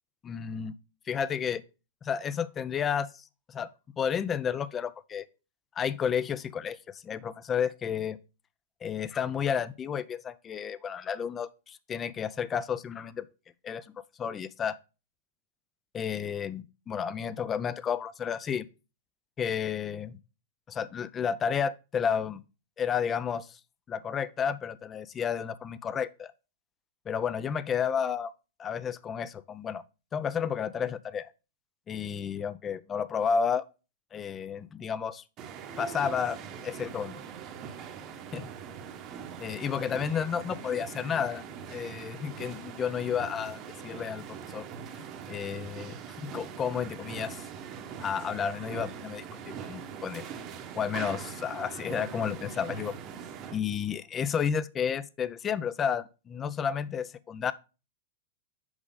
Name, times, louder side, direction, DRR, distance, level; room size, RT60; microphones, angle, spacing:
voice 1, 0.2-0.7 1.1-1.6 2.0-3.7 4.0-5.2 5.8-8.2 8.8-13.2 13.6-13.9 14.2-14.8 15.9-18.7 19.4-20.2 20.7-22.4 22.8-23.6 23.9-26.3 27.1-28.3 28.6-29.8 30.1-31.3 31.9-33.6 34.1-35.2 35.8-37.2 38.3-38.4 39.4-44.2 44.5-44.7 45.0-47.4 48.0-50.3 50.8-52.9 53.5-57.5, left 7 dB, 25° left, 0.5 m, -31 dB
sound 1, 35.4-53.6, right 7 dB, 40° right, 1.0 m, -42 dB
6.2 x 5.0 x 3.8 m
hypercardioid pair, 110°, 0 cm